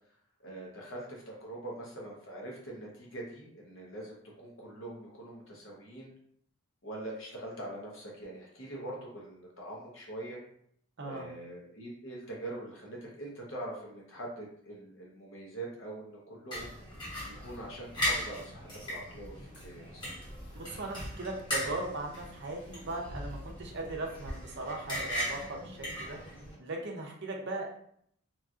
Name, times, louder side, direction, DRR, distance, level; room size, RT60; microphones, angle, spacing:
voice 1, 0.4-6.1 6.8-10.4 11.0-16.7 17.0-20.0, right 1 dB, 55° left, -2 dB, 0.9 m, -43 dB
voice 2, 11.0-11.3 20.5-26.2 26.6-27.8, right 2 dB, 50° right, 1 dB, 0.6 m, -38 dB
sound 1, 16.5-26.5, equal, 20° left, 1.0 m, -38 dB
3.0 x 2.6 x 2.4 m, 0.67 s
head